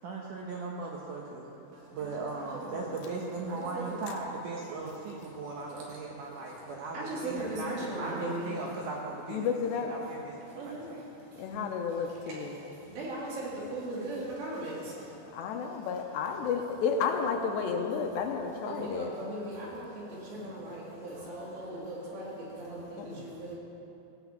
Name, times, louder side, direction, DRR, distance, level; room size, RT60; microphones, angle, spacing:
voice 1, 0.0-1.6 1.9-9.4 9.7-11.0, right 3 dB, 85° right, -2 dB, 1.8 m, -38 dB
voice 2, 1.7-2.7 3.5-4.0 5.3-8.5 10.4-12.6 12.9-16.6 18.4-23.6, right 1 dB, 70° right, -6 dB, 4.9 m, -40 dB
voice 3, 9.3-9.9 11.4-12.6 15.3-19.1 20.4-20.5 23.0-23.2, left 6 dB, 80° left, 3 dB, 2.8 m, -32 dB
16.0 x 6.0 x 8.4 m, 2.9 s
omnidirectional pair, 5.2 m